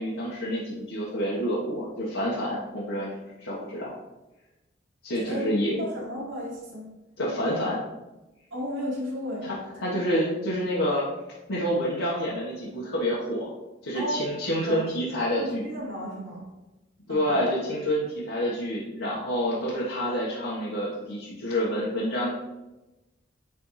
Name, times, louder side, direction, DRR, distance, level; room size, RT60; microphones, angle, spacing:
voice 1, 0.0-4.0 5.0-5.8 7.2-7.8 9.4-11.1 11.5-13.5 13.8-15.6 17.1-22.3, equal, 85° left, -8 dB, 1.3 m, -28 dB
voice 2, 5.1-6.9 8.5-10.0 13.9-14.2 14.7-14.8 15.3-16.4 17.1-17.3, equal, 80° right, -8 dB, 2.2 m, -34 dB
9.2 x 3.5 x 3.2 m, 1.0 s
head